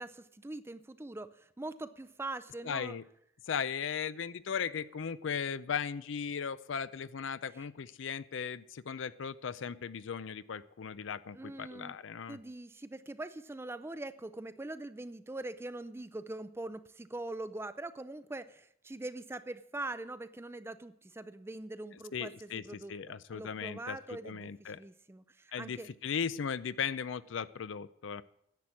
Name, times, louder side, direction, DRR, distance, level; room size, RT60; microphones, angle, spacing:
voice 1, 0.0-3.0 7.5-7.6 11.3-12.0 12.3-25.9, right 2 dB, 10° right, 13 dB, 0.4 m, -43 dB
voice 2, 2.6-3.0 3.5-12.4 22.1-22.6 22.9-24.8 25.5-28.2, left 7 dB, 65° left, 16 dB, 0.5 m, -37 dB
10.5 x 7.6 x 8.3 m, 0.75 s
head